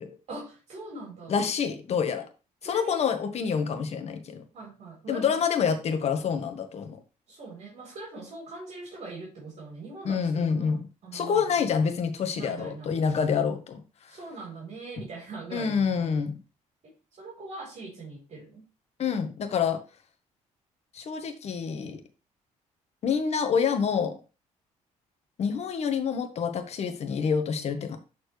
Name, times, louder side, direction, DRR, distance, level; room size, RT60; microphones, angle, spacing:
voice 1, 0.3-1.4 2.6-3.0 3.6-3.7 4.5-5.3 7.3-10.8 11.0-11.5 12.4-12.9 13.3-13.5 14.1-16.2 16.8-18.6, right 3 dB, 60° right, -3 dB, 3.8 m, -42 dB
voice 2, 1.3-2.2 2.6-4.4 5.1-7.0 10.0-10.9 11.1-13.8 15.5-16.4 19.0-19.8 20.9-22.0 23.0-24.2 25.4-28.0, left 6 dB, 55° left, 8 dB, 1.4 m, -27 dB
11.5 x 4.4 x 3.2 m, 0.31 s
cardioid pair, 115°, 13 cm